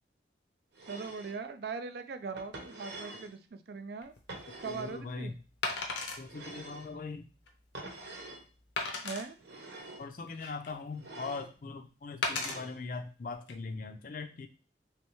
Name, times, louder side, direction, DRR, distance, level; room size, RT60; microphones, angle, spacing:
sound 1, 0.7-1.4 2.4-3.3 4.3-5.0 6.2-6.9 7.7-8.4 9.4-10.1 10.9-11.5 12.2-12.8, right 2 dB, 75° right, 0.9 m, -46 dB
voice 1, 0.9-4.1 4.6-5.3 9.0-9.4, right 4 dB, 60° right, 10 dB, 0.4 m, -40 dB
Wood, 4.0-4.2 5.6-6.2 6.8-6.9 7.5-7.6 8.8-9.2 10.0-10.8 12.2-12.6 13.3-13.5, left 3 dB, 80° left, 0.7 m, -35 dB
voice 2, 4.6-5.3 6.2-7.3 10.0-14.5, left 4 dB, 50° left, 7 dB, 0.4 m, -41 dB
3.3 x 3.1 x 3.0 m, 0.35 s
head